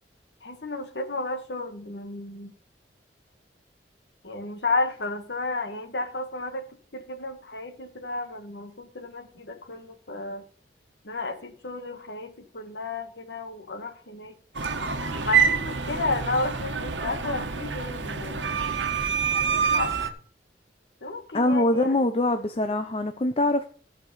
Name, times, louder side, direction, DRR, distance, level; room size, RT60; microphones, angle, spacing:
voice 1, 0.4-2.5 4.2-10.4 11.0-14.3 15.2-18.6 19.5-20.0 21.0-22.0, left 3 dB, 70° left, 1.6 m, -32 dB
sound 1, 14.5-20.1, right 6 dB, 85° right, 1.2 m, -26 dB
voice 2, 21.3-23.6, left 1 dB, 35° left, 0.7 m, -23 dB
14.0 x 5.2 x 5.5 m
head